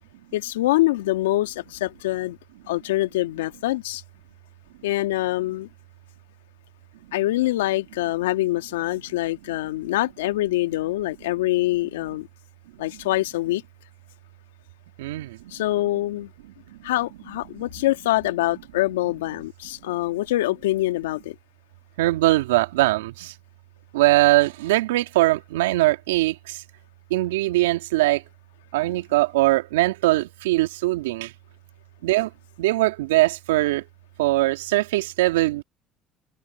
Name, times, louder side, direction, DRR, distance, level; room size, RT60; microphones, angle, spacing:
voice 1, 0.3-2.4 2.7-4.0 4.8-5.7 7.1-12.3 12.8-13.6 15.5-16.3 16.8-21.3, left 16 dB, 80° left, 2.1 m, -24 dB
voice 2, 15.0-15.5 22.0-23.3 23.9-26.6 27.1-28.2 28.7-31.3 32.0-32.3 32.6-33.8 34.2-35.6, right 18 dB, 80° right, 2.6 m, -21 dB
hypercardioid pair, 65°, 0 cm